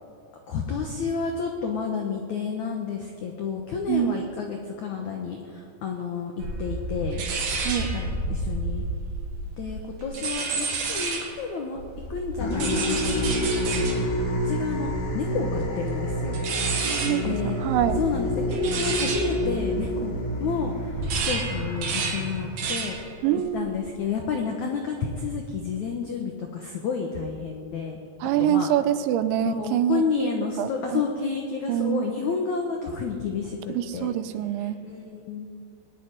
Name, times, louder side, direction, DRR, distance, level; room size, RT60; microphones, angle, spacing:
voice 1, 0.5-7.3 7.9-8.8 9.6-11.8 12.1-16.4 17.2-17.6 17.9-23.0 23.5-28.0 28.4-28.7 29.4-34.1 34.6-35.5, left 5 dB, 85° left, 2 dB, 1.6 m, -30 dB
sound 1, 6.4-11.4 11.8-20.4 20.8-23.1 23.4-23.8, right 3 dB, 55° right, 3.3 m, -31 dB
voice 2, 7.7-8.0 16.8-18.0 23.2-23.7 28.2-30.3 30.6-31.0 31.7-32.1 33.8-34.8, right 11 dB, 85° right, 12 dB, 3.0 m, -25 dB
sound 2, 12.4-23.0, equal, 55° left, 3.0 m, -28 dB
20.0 x 7.0 x 9.9 m, 2.2 s
omnidirectional pair, 5.2 m